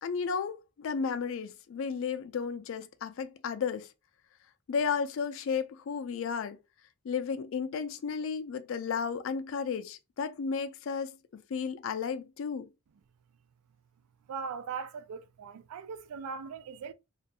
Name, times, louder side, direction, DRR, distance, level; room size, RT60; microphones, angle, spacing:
voice 1, 0.0-3.9 4.7-6.6 7.0-12.7, left 6 dB, 60° left, 0.3 m, -33 dB
voice 2, 14.3-16.9, right 5 dB, 85° right, 0.3 m, -39 dB
2.4 x 2.2 x 2.7 m
head